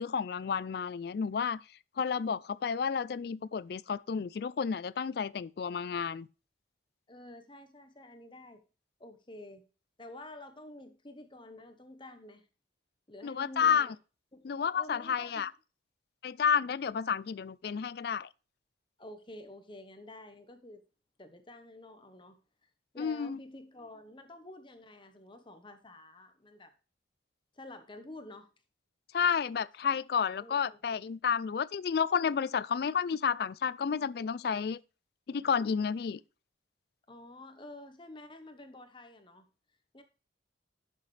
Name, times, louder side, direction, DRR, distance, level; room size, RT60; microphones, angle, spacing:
voice 1, 0.0-1.6 2.0-6.3 13.2-13.9 14.4-15.5 16.2-18.3 23.0-23.4 29.1-34.8 35.3-36.2, left 6 dB, 55° left, 0.3 m, -31 dB
voice 2, 7.1-8.6 9.0-9.6 10.0-12.5 13.1-13.9 14.3-15.5 19.0-20.8 21.2-22.4 22.6-26.7 27.5-28.5 30.4-30.8 37.1-39.4 39.9-40.0, left 1 dB, 25° left, 1.0 m, -49 dB
11.0 x 6.6 x 3.3 m
head